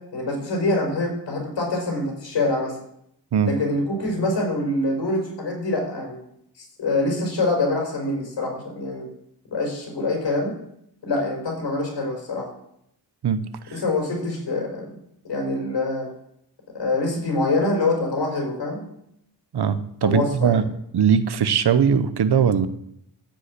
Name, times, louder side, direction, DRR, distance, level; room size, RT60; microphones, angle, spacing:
voice 1, 0.1-2.7 3.4-6.2 6.8-9.1 9.5-10.5 11.0-12.5 13.7-14.8 15.2-16.1 16.7-18.8 20.0-20.6, left 2 dB, 85° left, 0 dB, 4.7 m, -25 dB
voice 2, 13.2-13.8 19.5-20.6 20.9-22.7, right 7 dB, 65° right, 12 dB, 0.9 m, -20 dB
14.5 x 5.6 x 8.2 m, 0.75 s
wide cardioid pair, 140°, 42 cm